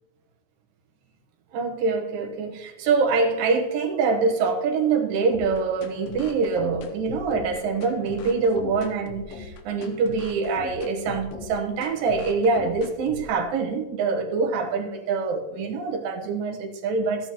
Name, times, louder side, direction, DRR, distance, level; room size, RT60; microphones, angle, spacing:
voice 1, 1.5-17.3, right 4 dB, 80° right, 3 dB, 2.8 m, -25 dB
sound 1, 5.3-13.3, left 4 dB, 80° left, 1.3 m, -39 dB
13.5 x 9.8 x 3.0 m, 1.2 s
omnidirectional pair, 4.1 m